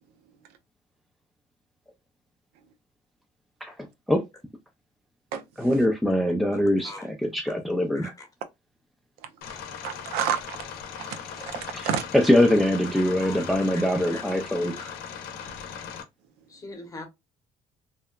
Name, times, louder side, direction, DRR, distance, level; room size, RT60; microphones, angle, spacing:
voice 1, 5.6-8.1 11.7-11.9 12.1-14.8, left 1 dB, ahead, 0.3 m, -23 dB
voice 2, 6.5-7.1 7.9-8.3 13.0-14.4 14.8-15.0 16.5-17.1, left 2 dB, 20° left, 0.9 m, -43 dB
sound 1, 9.4-16.0, left 7 dB, 85° left, 0.6 m, -39 dB
voice 3, 9.8-10.6 11.0-12.0, right 8 dB, 90° right, 0.5 m, -30 dB
2.8 x 2.1 x 2.2 m
cardioid pair, 110°, 16 cm